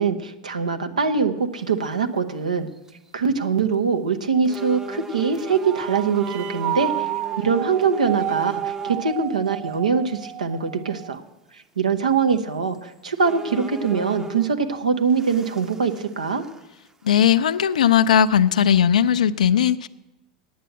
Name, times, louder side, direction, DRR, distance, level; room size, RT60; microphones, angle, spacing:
voice 1, 0.0-2.7 3.1-7.1 7.4-11.2 11.5-16.4, right 5 dB, 85° right, 7 dB, 0.8 m, -23 dB
sound 1, 2.1-2.2 2.7-3.1 3.7-3.8 4.4-9.1 9.7-9.8 12.2-12.3 12.7-12.8 13.2-14.6 15.1-16.9 17.2-17.3 18.0-18.1 18.7-19.1, right 4 dB, 15° right, 0.7 m, -36 dB
sound 2, 5.6-11.1, right 15 dB, 40° right, 0.3 m, -31 dB
voice 2, 17.0-19.9, left 9 dB, 75° left, 12 dB, 0.4 m, -18 dB
9.4 x 8.1 x 8.1 m, 0.99 s
figure-of-eight pair, 85°, 4 cm